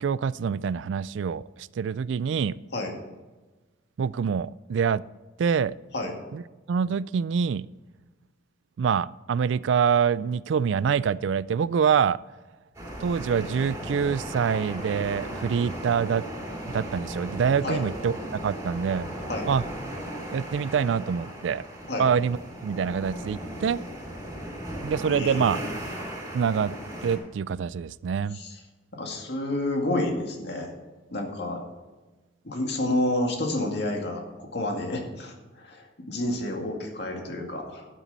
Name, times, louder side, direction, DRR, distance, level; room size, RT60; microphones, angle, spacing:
voice 1, 0.0-2.6 4.0-5.0 5.4-5.7 6.3-6.4 6.7-7.7 8.8-12.2 13.0-16.3 16.7-19.1 19.5-19.6 20.3-21.6 22.0-22.4 22.6-23.8 24.8-25.6 26.3-26.7 27.0-28.4, right 7 dB, 75° right, 19 dB, 0.3 m, -25 dB
sound 1, 12.7-27.2, right 1 dB, 15° right, 3.1 m, -37 dB
voice 2, 25.1-25.6 28.3-28.6 28.9-30.7 31.1-31.6 32.4-37.9, left 1 dB, 60° left, 2 dB, 2.2 m, -29 dB
12.0 x 9.2 x 4.1 m, 1.2 s
head